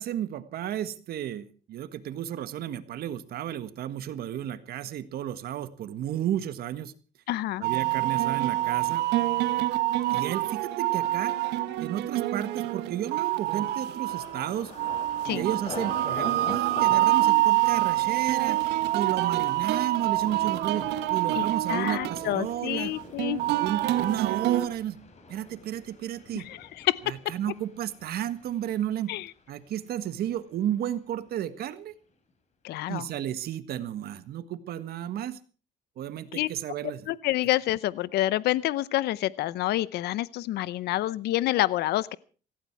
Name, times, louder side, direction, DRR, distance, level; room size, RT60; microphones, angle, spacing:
voice 1, 0.0-6.9 7.6-9.1 10.1-11.3 11.8-14.7 15.2-22.9 23.6-25.0 25.3-26.5 27.1-29.1 29.5-31.9 32.9-35.4 36.0-37.1, right 11 dB, 65° right, 12 dB, 1.6 m, -33 dB
voice 2, 7.3-7.6 15.2-15.4 21.3-23.4 26.4-27.0 29.1-29.3 32.6-33.1 36.3-36.5 37.1-42.2, left 15 dB, 75° left, 19 dB, 0.7 m, -28 dB
sound 1, 7.6-24.7, right 16 dB, 85° right, 1.3 m, -26 dB
Thunder, 14.1-29.8 30.1-30.7 31.1-31.4, left 3 dB, 40° left, 4.6 m, -45 dB
17.5 x 16.5 x 4.6 m, 0.39 s
cardioid pair, 110°, 17 cm